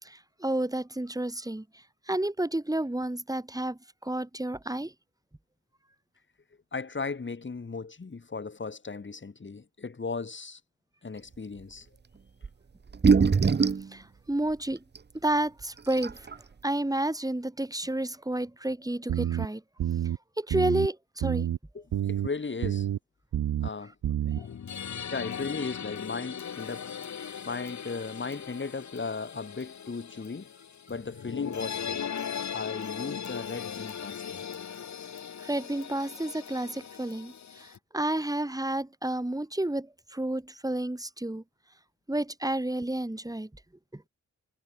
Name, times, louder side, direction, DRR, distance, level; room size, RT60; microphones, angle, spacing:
voice 1, 0.0-1.6 2.1-4.9 13.9-14.8 15.2-16.3 16.6-19.6 20.4-21.5 24.4-24.5 35.4-41.4 42.1-43.5 43.9-44.0, right 1 dB, 10° right, 5.8 m, -31 dB
voice 2, 6.7-10.6 11.0-11.9 21.7-22.9 23.6-23.9 24.2-24.4 25.1-26.9 27.4-30.5 30.9-32.0 32.5-34.4, left 4 dB, 35° left, 3.6 m, -36 dB
sound 1, 12.4-12.5 12.9-13.9 15.0-15.1 15.6-15.7 15.9-16.3, right 5 dB, 30° right, 1.0 m, -22 dB
sound 2, 19.1-19.5 19.8-20.2 20.5-20.9 21.2-21.6 21.9-22.3 22.6-23.0 23.3-23.7 24.0-24.4, right 10 dB, 80° right, 2.5 m, -28 dB
sound 3, 24.3-37.8, left 7 dB, 60° left, 2.4 m, -38 dB
cardioid pair, 65°, 32 cm